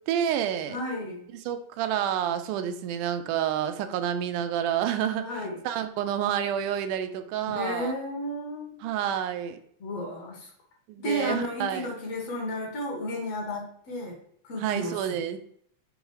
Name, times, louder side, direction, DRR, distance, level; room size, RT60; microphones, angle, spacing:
voice 1, 0.1-0.8 1.5-5.3 5.6-7.9 8.8-9.6 10.9-11.9 14.6-15.4, right 9 dB, 85° right, 8 dB, 2.2 m, -29 dB
voice 2, 0.7-1.3 5.2-5.6 7.5-8.8 9.8-10.5 11.0-14.2 14.4-15.2, left 1 dB, 55° left, 0 dB, 2.5 m, -33 dB
6.6 x 4.0 x 4.8 m, 0.64 s
omnidirectional pair, 3.5 m